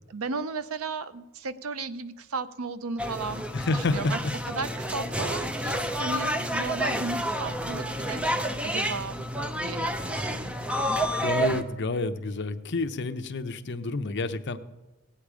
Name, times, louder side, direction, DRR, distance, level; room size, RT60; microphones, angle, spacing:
voice 1, 0.1-4.2 4.5-9.2 9.5-10.5, right 4 dB, 75° right, 13 dB, 0.6 m, -35 dB
sound 1, 3.0-11.6, equal, 5° right, 0.5 m, -29 dB
voice 2, 3.5-4.1 11.2-14.6, left 3 dB, 55° left, 9 dB, 0.7 m, -29 dB
17.5 x 8.8 x 4.9 m, 1.1 s
head